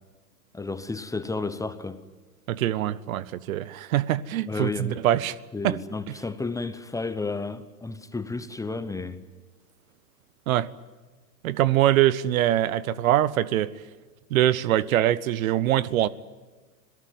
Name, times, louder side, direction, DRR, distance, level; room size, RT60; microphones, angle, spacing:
voice 1, 0.5-2.0 4.5-5.0 5.5-9.2, left 3 dB, 5° left, 1.0 m, -32 dB
voice 2, 2.5-5.4 5.6-5.8 10.5-10.7 11.4-13.7 14.3-16.1, right 13 dB, 55° right, 1.0 m, -23 dB
27.0 x 18.5 x 9.3 m
hypercardioid pair, 105°, 49 cm